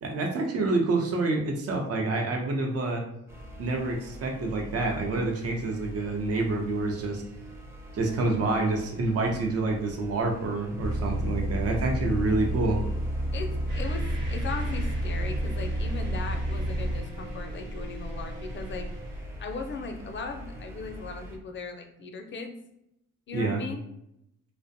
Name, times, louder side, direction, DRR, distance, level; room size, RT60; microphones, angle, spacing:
voice 1, 0.0-3.0 3.6-7.2 7.9-12.8 23.3-23.6, right 2 dB, 50° right, 1 dB, 0.6 m, -27 dB
sound 1, 3.3-21.4, equal, 10° right, 0.5 m, -44 dB
Bus, 10.8-17.0, right 1 dB, 25° right, 0.8 m, -30 dB
voice 2, 13.3-18.9 19.4-22.6 23.3-23.8, left 4 dB, 40° left, 5 dB, 0.5 m, -38 dB
sound 2, 13.7-19.2, equal, 90° right, 0.9 m, -38 dB
2.4 x 2.1 x 2.6 m, 0.80 s
cardioid pair, 90°, 30 cm